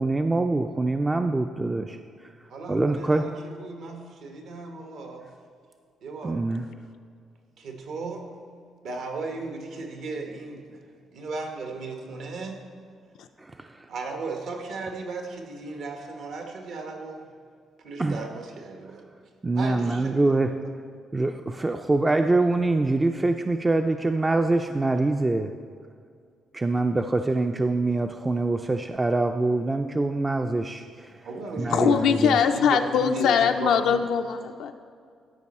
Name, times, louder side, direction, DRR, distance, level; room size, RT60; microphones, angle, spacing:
voice 1, 0.0-2.0 2.7-3.3 6.2-6.7 13.4-13.9 18.0-18.3 19.4-20.6 21.1-25.5 26.5-31.2 31.6-32.4, right 2 dB, 20° right, 6 dB, 0.3 m, -24 dB
voice 2, 2.5-5.2 6.0-6.4 7.6-8.3 8.8-10.8 11.1-12.6 13.9-17.3 17.8-19.0 19.5-20.4 31.2-34.1, right 3 dB, 75° right, 3 dB, 1.2 m, -36 dB
voice 3, 31.7-34.7, left 7 dB, 80° left, 6 dB, 0.4 m, -22 dB
13.0 x 5.3 x 4.2 m, 2.2 s
cardioid pair, 90°, 0 cm